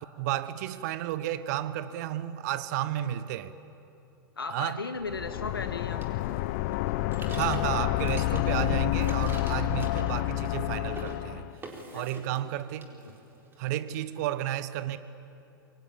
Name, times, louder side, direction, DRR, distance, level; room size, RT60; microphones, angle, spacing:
voice 1, 0.2-3.5 4.5-4.8 7.3-11.5 11.9-12.9 13.6-15.0, right 13 dB, 50° right, 14 dB, 1.2 m, -32 dB
voice 2, 4.4-6.0 11.9-12.6 12.9-13.1, left 4 dB, 80° left, 8 dB, 1.9 m, -37 dB
sound 1, 5.0-11.5, left 18 dB, 45° left, 0.6 m, -29 dB
sound 2, 6.0-8.6 8.9-10.6 10.8-11.2 11.6-12.5 12.8-13.6, right 2 dB, 20° right, 4.6 m, -46 dB
28.0 x 24.0 x 8.7 m, 2.8 s
figure-of-eight pair, 100°, 12 cm